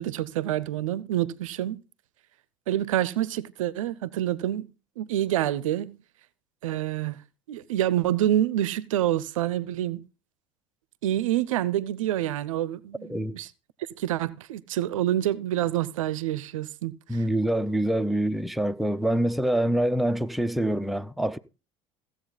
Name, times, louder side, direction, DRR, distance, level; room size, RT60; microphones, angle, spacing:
voice 1, 0.0-1.8 2.7-4.7 5.0-6.0 6.6-7.2 7.5-10.0 11.0-13.5 14.0-16.9, right 12 dB, 80° right, 0.5 m, -27 dB
voice 2, 17.1-21.4, right 1 dB, ahead, 0.6 m, -25 dB
15.5 x 7.7 x 3.9 m
hypercardioid pair, 70°, 17 cm